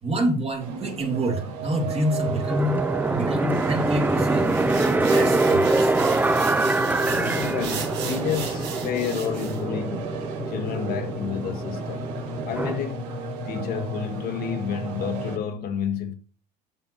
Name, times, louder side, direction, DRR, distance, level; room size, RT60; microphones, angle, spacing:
voice 1, 0.0-2.8 3.1-4.5 5.1-5.9 7.0-7.2, equal, 30° right, 2.2 m, -27 dB
sound 1, 0.6-15.4, right 3 dB, 80° right, 1.7 m, -33 dB
sound 2, 2.1-12.8, right 2 dB, 10° right, 0.5 m, -24 dB
sound 3, 4.5-9.6, right 7 dB, 65° right, 2.0 m, -37 dB
voice 2, 7.2-10.2 10.5-12.1 12.5-13.1 13.4-16.1, left 8 dB, 50° left, 1.4 m, -30 dB
7.7 x 7.1 x 2.8 m
supercardioid pair, 100°, 20 cm